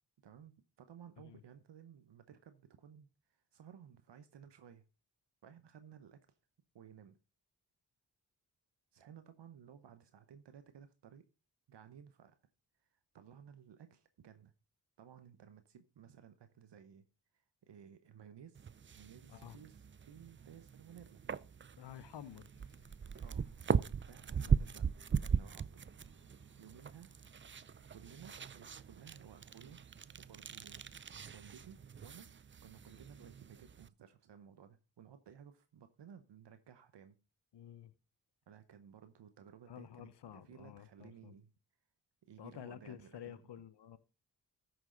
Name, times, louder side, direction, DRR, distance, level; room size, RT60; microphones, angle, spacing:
voice 1, 0.2-4.8 5.4-6.4 6.7-7.2 8.9-11.3 11.7-12.4 12.9-14.5 15.0-17.1 17.3-21.2 23.2-23.5 24.1-25.9 26.6-27.1 27.9-29.8 30.2-30.9 31.3-32.3 32.6-37.2 38.5-41.5 42.2-43.5, right 8 dB, 80° right, 0.9 m, -57 dB
sound 1, 18.6-33.9, right 6 dB, 30° right, 0.4 m, -39 dB
sound 2, 19.6-25.2, equal, 25° left, 3.7 m, -71 dB
voice 2, 21.8-22.5 24.4-24.7 37.5-37.9 39.7-41.3 42.4-44.0, left 10 dB, 75° left, 0.8 m, -51 dB
Aircraft, 23.0-29.1, right 2 dB, 45° right, 2.6 m, -68 dB
14.0 x 6.3 x 3.8 m
cardioid pair, 45°, 41 cm